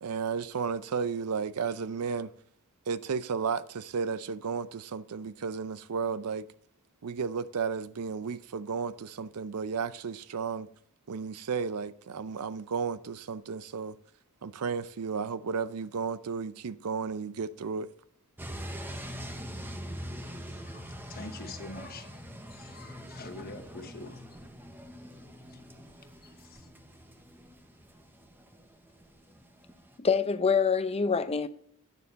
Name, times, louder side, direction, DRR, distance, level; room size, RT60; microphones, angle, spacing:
voice 1, 0.0-2.3 2.9-6.5 7.0-10.7 11.1-14.0 14.4-17.9, right 5 dB, 80° right, 0.5 m, -33 dB
sound 1, 18.4-30.0, equal, 10° right, 1.0 m, -44 dB
voice 2, 20.5-22.2 22.5-24.2 25.5-25.6 26.5-26.6, left 3 dB, 45° left, 1.2 m, -45 dB
voice 3, 30.0-31.5, left 5 dB, 25° left, 0.6 m, -25 dB
9.7 x 6.9 x 4.0 m
head